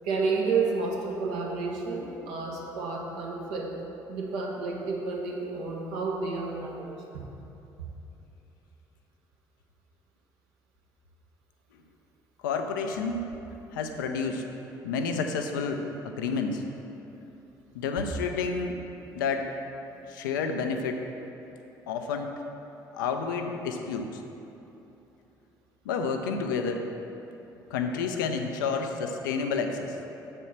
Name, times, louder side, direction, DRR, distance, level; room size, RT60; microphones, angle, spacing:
voice 1, 0.0-3.7 4.1-7.2, right 4 dB, 75° right, -2 dB, 1.2 m, -30 dB
voice 2, 12.4-13.3 13.7-14.4 14.8-16.6 17.7-18.8 19.1-19.5 20.1-21.0 21.9-22.4 22.9-24.2 25.8-26.9 27.7-30.0, left 5 dB, 80° left, 5 dB, 0.5 m, -30 dB
7.1 x 4.4 x 5.8 m, 3.0 s
hypercardioid pair, 55°, 10 cm